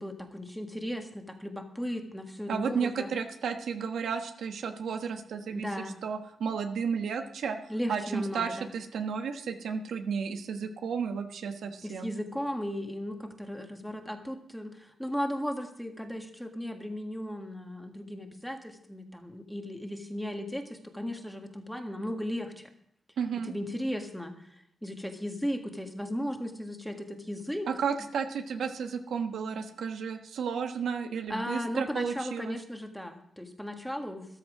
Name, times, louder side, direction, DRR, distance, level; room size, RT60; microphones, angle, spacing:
voice 1, 0.0-3.1 5.5-6.0 7.7-8.7 11.8-14.7 15.0-22.5 23.4-24.3 24.8-27.7 31.3-34.3, equal, ahead, 4 dB, 1.6 m, -36 dB
voice 2, 2.5-5.7 6.0-7.6 7.9-12.1 23.2-23.5 27.7-32.6, right 6 dB, 85° right, 5 dB, 1.3 m, -33 dB
13.5 x 12.5 x 4.9 m, 0.69 s
wide cardioid pair, 130°, 0 cm